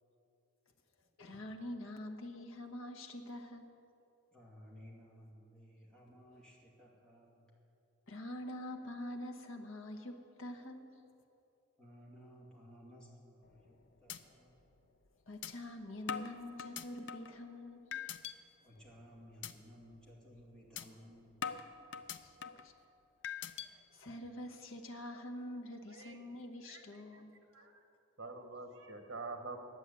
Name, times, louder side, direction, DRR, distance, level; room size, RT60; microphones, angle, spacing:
voice 1, 1.2-3.7 8.1-11.0 15.3-18.0 22.1-22.7 23.7-27.3, left 1 dB, 75° left, 4 dB, 1.2 m, -46 dB
voice 2, 4.3-7.5 11.8-14.6 18.6-21.4, equal, 5° left, -5 dB, 2.3 m, -57 dB
sound 1, 13.4-13.7 14.1-14.2 14.6-14.7 15.4-15.5 16.1-17.4 17.9-18.3 18.8-19.0 19.4-19.5 19.9-20.1 20.8-20.9 21.4-22.7 23.2-23.7, left 8 dB, 60° left, 0.5 m, -42 dB
voice 3, 25.9-26.2 26.7-27.2 27.5-27.8 28.2-29.6, right 3 dB, 65° right, 5 dB, 1.2 m, -47 dB
11.0 x 8.9 x 8.2 m, 2.8 s
head